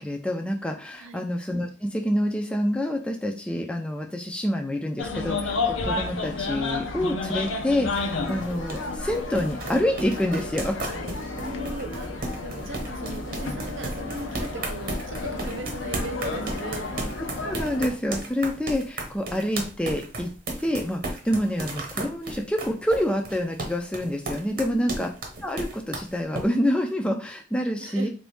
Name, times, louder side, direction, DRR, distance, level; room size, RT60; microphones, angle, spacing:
voice 1, 0.0-10.8 17.2-20.3 20.6-25.1 25.4-28.1, left 1 dB, 5° left, 3 dB, 0.3 m, -27 dB
sound 1, 5.0-17.8, left 3 dB, 85° left, 0.7 m, -32 dB
sound 2, 7.4-26.5, right 2 dB, 45° right, 1.0 m, -34 dB
voice 2, 11.3-16.9 24.5-25.1 27.8-28.1, right 2 dB, 80° right, 5 dB, 0.8 m, -38 dB
3.8 x 2.6 x 3.4 m, 0.35 s
head